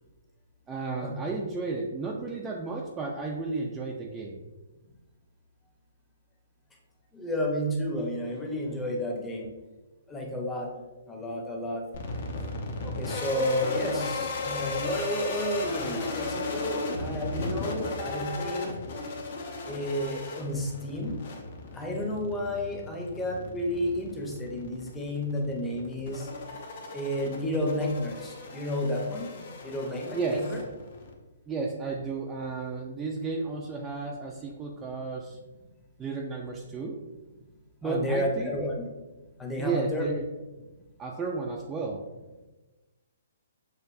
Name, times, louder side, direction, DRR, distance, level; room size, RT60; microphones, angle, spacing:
voice 1, 0.7-4.4 30.1-30.5 31.5-35.4 36.0-37.0 37.8-38.7 39.6-40.3 41.0-42.0, right 4 dB, 15° right, -1 dB, 0.4 m, -33 dB
voice 2, 7.1-9.5 10.1-10.7 11.1-11.8 13.0-18.7 19.6-21.2 21.7-26.3 26.9-30.6 37.8-38.8 39.4-40.1, left 1 dB, 10° left, 0 dB, 0.7 m, -31 dB
sound 1, 11.9-31.1, left 3 dB, 55° left, 0.8 m, -36 dB
6.5 x 2.5 x 2.5 m, 1.2 s
hypercardioid pair, 145°, 0 cm